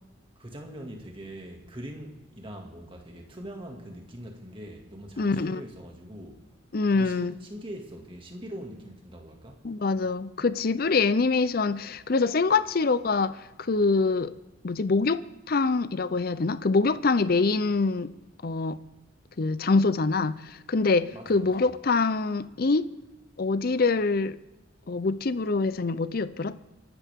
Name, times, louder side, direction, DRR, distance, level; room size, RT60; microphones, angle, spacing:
voice 1, 0.4-6.4 6.9-9.7 21.1-21.7, right 1 dB, 25° right, 2.1 m, -42 dB
voice 2, 5.2-5.6 6.7-7.3 9.6-14.3 14.6-18.1 18.4-18.8 19.4-22.9 23.4-24.4 24.9-26.6, left 3 dB, 50° left, 0.5 m, -25 dB
27.5 x 12.0 x 3.6 m
head